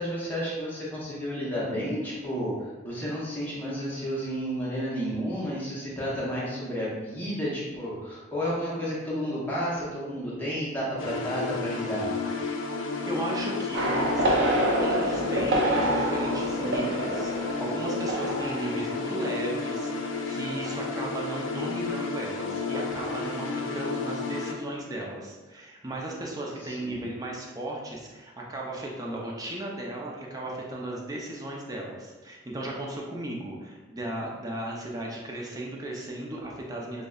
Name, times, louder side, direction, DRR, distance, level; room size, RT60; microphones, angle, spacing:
voice 1, 0.0-12.1 26.6-27.0, equal, 10° left, -7 dB, 0.8 m, -31 dB
sound 1, 11.0-24.5, left 4 dB, 85° left, 0.4 m, -32 dB
voice 2, 13.1-37.1, right 1 dB, 20° right, -2 dB, 0.5 m, -35 dB
sound 2, 13.7-20.2 20.5-20.8, right 1 dB, 70° right, 0.6 m, -28 dB
5.0 x 2.1 x 2.3 m, 1.2 s
head